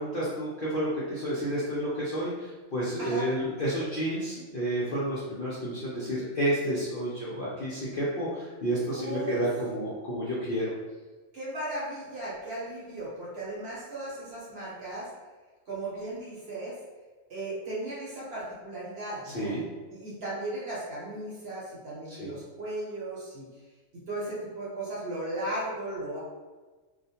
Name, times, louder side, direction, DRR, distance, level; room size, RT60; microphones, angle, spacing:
voice 1, 0.0-10.7 19.2-19.6 22.1-22.3, right 1 dB, 60° left, -8 dB, 0.6 m, -30 dB
voice 2, 8.9-9.4 11.3-15.1 15.7-16.8 17.3-19.5 19.9-23.4 23.9-26.2, right 1 dB, 55° right, -7 dB, 0.9 m, -36 dB
2.4 x 2.1 x 2.7 m, 1.3 s
omnidirectional pair, 1.4 m